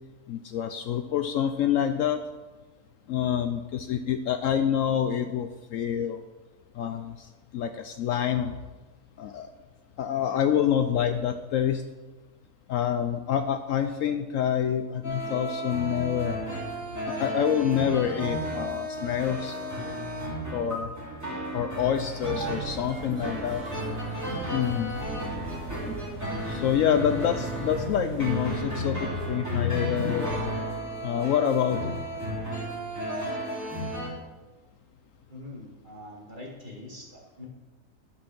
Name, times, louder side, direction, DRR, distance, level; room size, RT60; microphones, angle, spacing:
voice 1, 0.3-2.2 3.1-6.2 6.7-8.5 9.2-9.5 10.0-11.8 12.7-16.4 17.1-19.6 20.5-20.9 21.5-23.6 24.5-25.0 26.5-30.3 31.0-32.1, left 9 dB, 70° left, 8 dB, 0.9 m, -27 dB
sound 1, 15.0-34.1, equal, 10° right, 3.0 m, -33 dB
sound 2, 22.3-28.6, right 4 dB, 85° right, 2.6 m, -38 dB
voice 2, 35.3-37.5, left 1 dB, 30° right, -3 dB, 2.4 m, -43 dB
12.0 x 6.0 x 6.1 m, 1.2 s
omnidirectional pair, 1.6 m